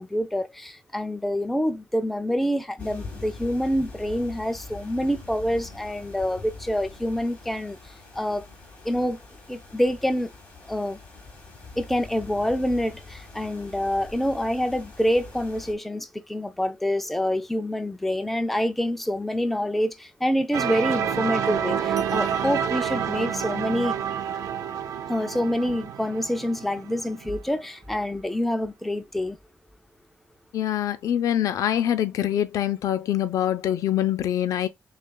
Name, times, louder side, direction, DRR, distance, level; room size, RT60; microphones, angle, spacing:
voice 1, 0.0-7.8 8.2-8.4 8.8-9.2 9.5-10.3 10.7-11.0 11.8-24.0 25.1-29.4, equal, 5° left, 0.3 m, -26 dB
sound 1, 2.8-15.7, left 3 dB, 20° left, 1.3 m, -43 dB
sound 2, 20.5-27.3, right 8 dB, 80° right, 0.5 m, -28 dB
voice 2, 30.5-34.7, left 11 dB, 75° left, 0.4 m, -24 dB
6.4 x 2.4 x 2.2 m
wide cardioid pair, 160°, 6 cm